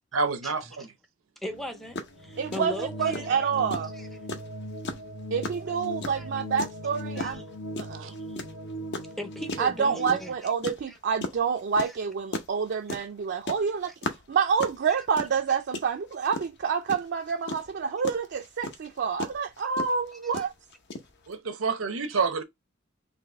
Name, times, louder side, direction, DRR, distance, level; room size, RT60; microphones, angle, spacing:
voice 1, 0.1-0.9 8.0-8.1 21.3-22.4, right 4 dB, 90° right, 0.7 m, -28 dB
voice 2, 1.4-3.3 3.9-4.1 6.1-6.3 7.2-7.4 8.1-8.4 9.2-10.5 10.9-11.0 11.8-12.0 12.9-13.0 20.3-20.4, left 1 dB, ahead, 0.5 m, -38 dB
sound 1, 1.5-10.3, equal, 85° left, 1.1 m, -39 dB
sound 2, 1.6-1.7 1.9-2.1 2.5-21.3, left 2 dB, 55° left, 0.7 m, -36 dB
voice 3, 2.4-3.9 5.3-7.4 7.8-8.1 9.6-13.9 14.3-20.5, right 6 dB, 55° right, 0.4 m, -28 dB
4.0 x 2.7 x 3.3 m
head